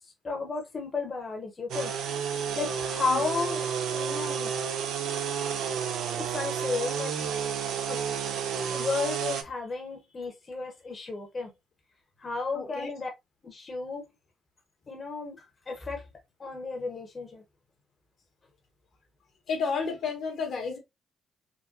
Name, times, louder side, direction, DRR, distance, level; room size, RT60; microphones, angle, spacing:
voice 1, 0.2-1.9 2.5-4.5 6.2-7.1 7.9-8.0 8.4-11.5 12.2-13.1 13.4-14.1 14.9-16.1 16.4-17.4, left 4 dB, 40° left, 1.0 m, -33 dB
sound 1, 1.7-9.4, right 7 dB, 80° right, 0.5 m, -31 dB
voice 2, 12.5-12.9 19.5-20.8, left 5 dB, 70° left, 1.2 m, -31 dB
3.8 x 2.2 x 2.6 m
supercardioid pair, 60°, 0 cm